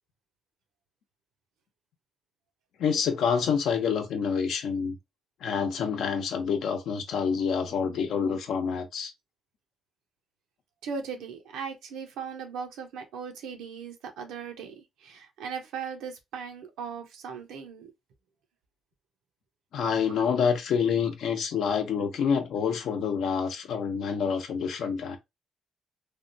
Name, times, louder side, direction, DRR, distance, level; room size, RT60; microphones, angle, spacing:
voice 1, 2.8-5.0 5.4-9.1 19.7-25.2, left 6 dB, 75° left, 0.7 m, -27 dB
voice 2, 10.8-17.9, right 6 dB, 90° right, 0.8 m, -38 dB
3.4 x 2.2 x 2.6 m
cardioid pair, 90°, 0 cm